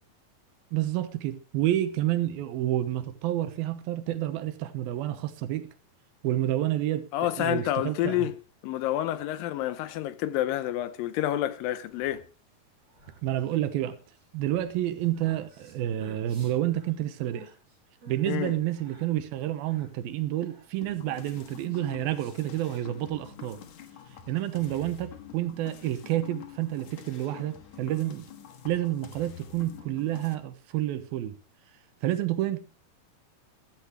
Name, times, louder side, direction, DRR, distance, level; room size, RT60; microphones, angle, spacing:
voice 1, 0.7-5.7 6.2-8.3 13.2-14.0 14.3-17.5 18.1-23.6 24.3-28.3 28.6-31.3 32.0-32.6, right 13 dB, 80° right, 2.8 m, -29 dB
voice 2, 7.1-8.4 8.6-12.2 18.3-18.5, left 13 dB, 75° left, 2.3 m, -29 dB
sound 1, 11.6-22.8, right 1 dB, 35° right, 5.5 m, -55 dB
sound 2, 20.8-30.4, left 9 dB, 60° left, 2.3 m, -47 dB
14.5 x 12.0 x 3.3 m
omnidirectional pair, 4.3 m